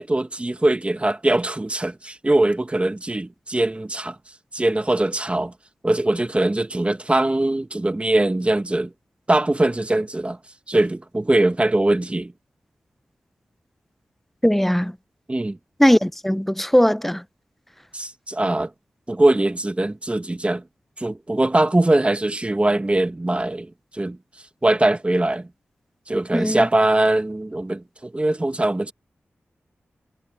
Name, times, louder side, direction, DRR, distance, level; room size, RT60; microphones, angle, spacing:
voice 1, 0.0-4.2 4.5-5.5 5.8-8.9 9.3-10.4 10.7-12.3 15.3-15.6 17.9-18.7 19.1-20.6 21.0-24.2 24.6-25.5 26.1-28.9, right 2 dB, 25° right, 1.8 m, -21 dB
voice 2, 14.4-14.9 15.8-17.2 26.3-26.7, equal, 5° left, 1.0 m, -18 dB
cardioid pair, 45°, 5 cm